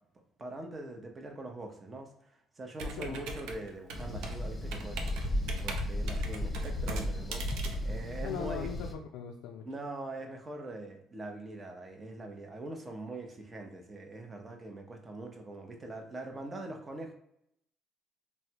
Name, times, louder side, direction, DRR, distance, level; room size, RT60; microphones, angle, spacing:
voice 1, 0.4-5.1 5.6-7.5 7.8-8.7 9.6-17.1, right 2 dB, 30° right, 3 dB, 0.8 m, -43 dB
Computer keyboard, 2.8-8.7, right 2 dB, 80° right, 0.5 m, -40 dB
sound 1, 3.9-8.9, left 1 dB, 25° left, 0.8 m, -35 dB
voice 2, 8.2-9.6, left 8 dB, 85° left, 0 dB, 0.3 m, -39 dB
3.2 x 2.1 x 2.8 m, 0.77 s
supercardioid pair, 70°, 0 cm